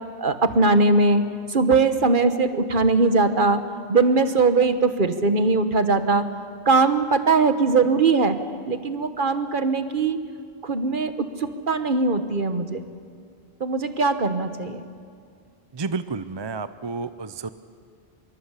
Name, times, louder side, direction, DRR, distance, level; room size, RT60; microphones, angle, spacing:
voice 1, 0.2-1.2 1.5-3.6 3.9-6.2 6.6-8.4 8.7-10.2 10.6-12.8 13.6-14.8, right 3 dB, 55° right, 9 dB, 1.4 m, -20 dB
voice 2, 15.7-17.5, right 4 dB, 30° right, 12 dB, 0.6 m, -30 dB
24.5 x 23.0 x 8.3 m, 2.2 s
omnidirectional pair, 1.0 m